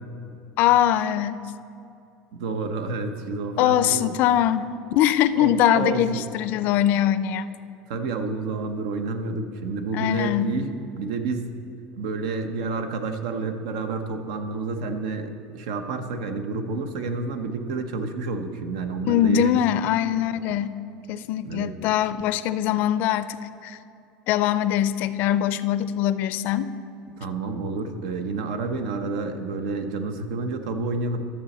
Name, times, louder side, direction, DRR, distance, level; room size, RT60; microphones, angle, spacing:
voice 1, 0.6-1.4 3.6-7.5 9.9-10.6 19.1-20.7 21.1-23.4 23.6-23.8 24.3-26.7, left 11 dB, 60° left, 14 dB, 0.4 m, -22 dB
voice 2, 2.3-4.1 5.3-6.2 7.9-11.5 11.9-19.6 21.4-21.8 27.2-31.3, right 3 dB, 85° right, 7 dB, 0.8 m, -29 dB
12.5 x 6.9 x 4.2 m, 2.7 s
supercardioid pair, 130°, 4 cm